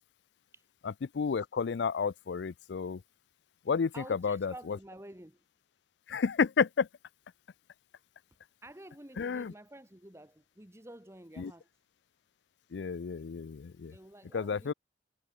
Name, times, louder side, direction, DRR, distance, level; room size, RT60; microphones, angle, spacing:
voice 1, 0.8-3.0 3.7-4.8 6.1-6.9 9.2-9.5 11.4-11.5 12.7-14.0 14.3-14.7, left 5 dB, 75° left, 0.4 m, -31 dB
voice 2, 3.9-5.4 8.6-11.7 13.9-14.7, right 1 dB, 15° right, 1.6 m, -50 dB
head